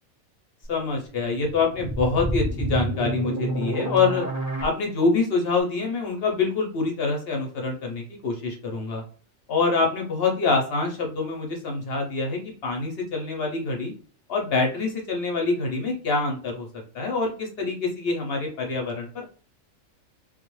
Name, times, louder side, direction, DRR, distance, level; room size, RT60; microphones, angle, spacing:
voice 1, 0.7-4.3 4.6-9.0 9.5-13.9 14.3-16.7 16.9-19.2, left 4 dB, 60° left, 1 dB, 0.7 m, -25 dB
sound 1, 1.5-4.6, right 1 dB, 20° left, 0.5 m, -28 dB
2.3 x 2.1 x 3.0 m, 0.41 s
omnidirectional pair, 1.5 m